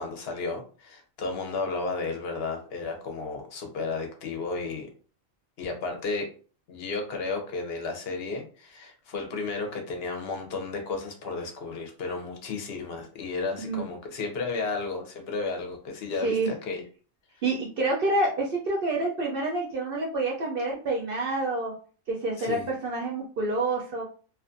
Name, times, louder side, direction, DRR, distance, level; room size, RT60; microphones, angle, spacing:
voice 1, 0.0-4.9 5.6-6.2 6.7-16.8 22.4-22.7, left 3 dB, 60° left, 3 dB, 0.8 m, -33 dB
voice 2, 17.4-21.7 22.1-24.0, right 2 dB, 60° right, -2 dB, 0.6 m, -28 dB
2.4 x 2.4 x 2.5 m, 0.40 s
omnidirectional pair, 1.4 m